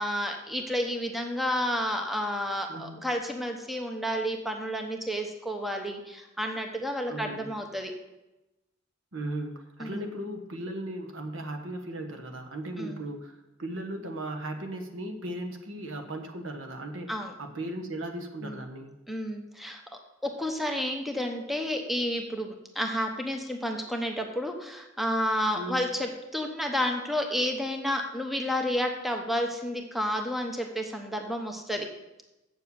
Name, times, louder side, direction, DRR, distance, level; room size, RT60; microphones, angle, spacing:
voice 1, 0.0-7.9 9.8-10.1 12.8-13.0 17.1-17.3 18.4-18.6 19.1-19.8 20.2-31.9, equal, ahead, 3 dB, 1.0 m, -31 dB
voice 2, 2.7-3.0 7.1-7.5 9.1-17.1 17.4-18.9 25.5-25.8, right 1 dB, 75° right, 5 dB, 1.3 m, -37 dB
7.8 x 7.1 x 7.0 m, 0.98 s
head